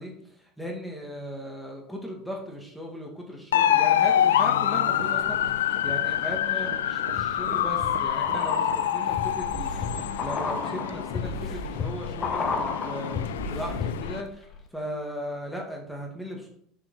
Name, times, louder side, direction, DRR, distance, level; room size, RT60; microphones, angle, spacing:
voice 1, 0.0-14.5 14.7-16.5, equal, ahead, -1 dB, 1.9 m, -37 dB
sound 1, 3.5-14.2, left 10 dB, 85° left, 0.4 m, -26 dB
sound 2, 4.4-11.1, right 8 dB, 75° right, 0.8 m, -44 dB
sound 3, 5.2-5.9 6.4-14.3 14.5-14.6, left 4 dB, 35° left, 1.3 m, -33 dB
6.4 x 5.9 x 3.9 m, 0.64 s
hypercardioid pair, 90°, 0 cm